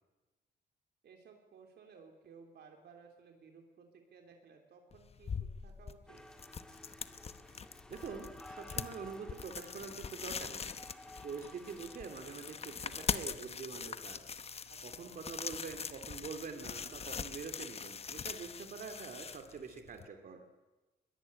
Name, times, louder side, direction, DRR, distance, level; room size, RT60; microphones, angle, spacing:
voice 1, 1.0-6.3 14.6-15.2, right 5 dB, 70° right, 3 dB, 3.3 m, -58 dB
sound 1, 4.9-20.1, left 6 dB, 35° left, 1.0 m, -43 dB
sound 2, 6.1-13.1, left 1 dB, 5° left, 1.9 m, -54 dB
voice 2, 7.9-20.4, right 5 dB, 55° right, 6 dB, 2.5 m, -46 dB
22.0 x 22.0 x 9.8 m, 1.1 s
wide cardioid pair, 150°, 18 cm